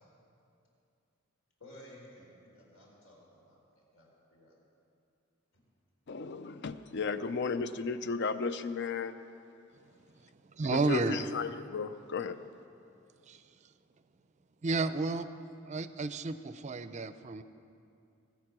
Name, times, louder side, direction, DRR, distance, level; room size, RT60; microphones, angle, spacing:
voice 1, 1.6-4.6 5.5-5.6, left 1 dB, 85° left, -3 dB, 4.0 m, -55 dB
voice 2, 6.1-9.2 10.7-12.4, left 4 dB, 55° left, 12 dB, 0.5 m, -34 dB
voice 3, 10.5-11.3 13.3-13.4 14.6-15.3 15.7-17.4, right 3 dB, 35° right, 12 dB, 0.4 m, -32 dB
19.0 x 8.4 x 6.1 m, 2.6 s
head